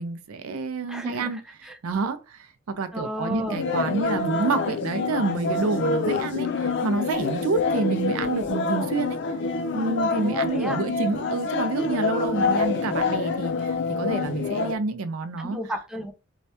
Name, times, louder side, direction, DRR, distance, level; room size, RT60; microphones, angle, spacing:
voice 1, 0.0-1.4 1.8-9.2 9.7-15.6, right 4 dB, 85° right, 0.4 m, -28 dB
voice 2, 0.9-1.8 2.9-3.6 10.1-10.8 12.2-12.6 15.4-16.1, equal, 5° right, 0.4 m, -33 dB
sound 1, 3.5-14.8, left 4 dB, 60° left, 0.5 m, -26 dB
3.1 x 2.3 x 2.7 m
head